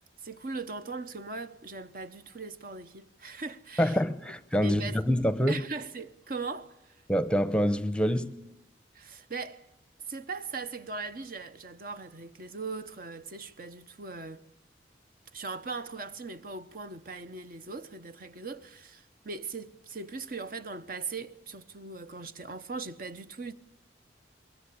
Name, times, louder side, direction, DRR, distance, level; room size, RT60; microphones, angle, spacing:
voice 1, 0.2-4.0 4.6-5.0 5.5-7.0 8.9-9.7 10.1-14.4 15.3-23.5, right 4 dB, 50° right, 1.1 m, -39 dB
voice 2, 3.8-5.6 7.1-8.4, equal, 5° left, 0.8 m, -26 dB
24.5 x 22.5 x 8.5 m
head